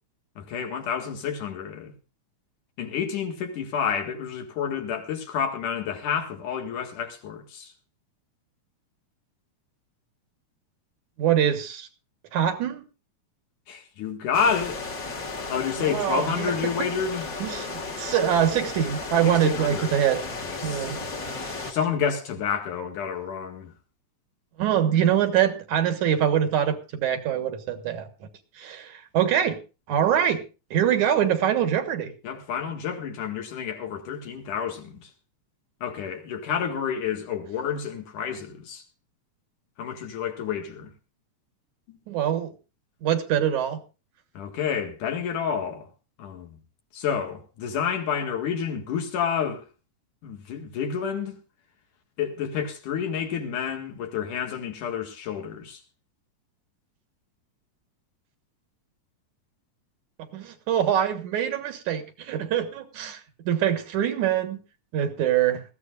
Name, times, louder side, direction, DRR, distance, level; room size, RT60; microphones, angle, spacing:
voice 1, 0.4-1.9 2.8-7.7 13.7-14.9 15.5-17.3 19.2-20.0 20.4-21.0 21.7-23.7 32.2-35.1 35.8-38.8 39.8-40.9 41.9-42.0 44.4-45.9 46.2-46.6 46.9-49.7 50.2-51.4 52.2-55.8, left 7 dB, 85° left, 3.5 m, -29 dB
voice 2, 11.2-11.9 12.3-12.8 15.8-16.9 17.4-20.2 20.6-21.0 21.4-21.8 24.6-28.1 28.6-29.6 29.9-30.4 30.7-32.1 42.1-42.5 43.0-43.8 60.3-63.2 63.5-64.6 64.9-65.6, right 9 dB, 75° right, 2.8 m, -24 dB
sound 1, 14.3-21.7, left 3 dB, 35° left, 1.8 m, -34 dB
20.5 x 14.5 x 2.5 m
omnidirectional pair, 3.5 m